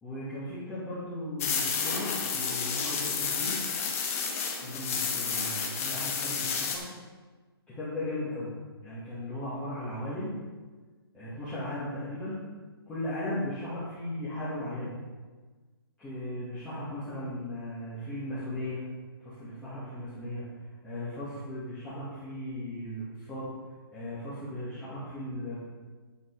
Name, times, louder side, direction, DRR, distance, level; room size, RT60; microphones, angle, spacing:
voice 1, 0.0-3.6 4.6-6.8 7.7-8.5 8.8-10.4 11.1-12.4 12.9-14.9 16.0-18.8 19.2-20.4 20.8-23.5 23.9-25.6, left 1 dB, 10° left, -12 dB, 2.3 m, -37 dB
sound 1, 1.4-6.8, left 6 dB, 35° left, 1.6 m, -31 dB
10.0 x 7.9 x 4.9 m, 1.3 s
hypercardioid pair, 165°, 13 cm